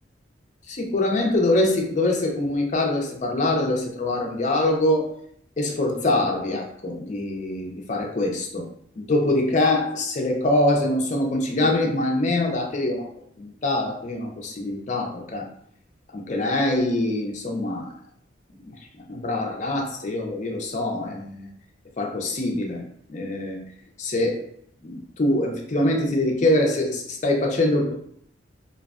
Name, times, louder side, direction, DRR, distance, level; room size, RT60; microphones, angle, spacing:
voice 1, 0.7-5.1 5.6-8.7 9.0-13.1 13.4-15.5 16.1-17.9 18.6-18.8 19.1-21.5 22.0-22.8 23.1-23.6 24.0-24.4 24.8-27.9, left 1 dB, 40° left, 1 dB, 0.5 m, -24 dB
2.5 x 2.2 x 2.3 m, 0.65 s
head